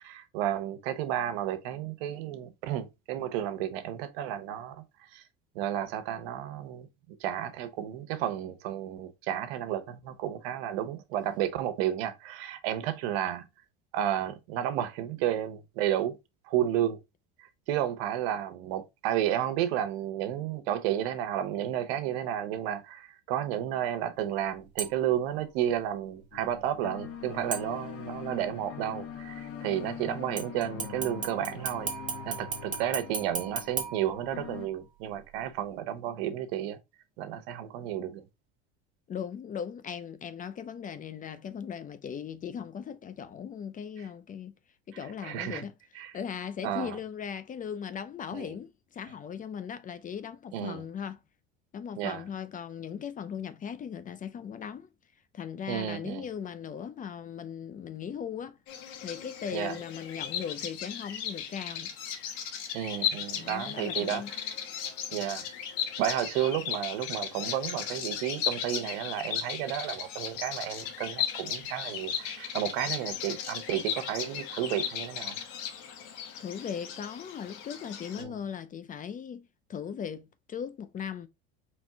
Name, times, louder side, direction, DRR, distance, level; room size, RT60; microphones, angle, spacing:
voice 1, 0.0-4.8 5.1-5.2 5.5-6.9 7.2-13.5 13.9-16.2 16.4-17.0 17.7-31.9 32.2-36.8 37.2-38.2 45.2-45.6 45.9-46.1 46.6-47.0 48.3-48.5 50.5-50.8 52.0-52.2 55.7-56.2 59.5-59.8 62.7-64.2 65.1-65.4 66.0-75.3 78.2-78.3, right 11 dB, 80° right, 0.9 m, -32 dB
sound 1, 24.8-25.2 27.5-28.2 30.4-34.8 35.2-35.3, right 6 dB, 25° right, 1.1 m, -37 dB
sound 2, 26.3-34.7, left 8 dB, 50° left, 0.9 m, -43 dB
voice 2, 39.1-44.6 44.9-51.2 51.7-54.9 55.3-58.6 59.0-61.9 63.3-64.3 76.4-81.3, left 7 dB, 25° left, 0.5 m, -38 dB
Bird vocalization bird call bird song, 58.7-78.2, left 8 dB, 70° left, 1.1 m, -36 dB
4.4 x 3.0 x 3.4 m
supercardioid pair, 110°, 30 cm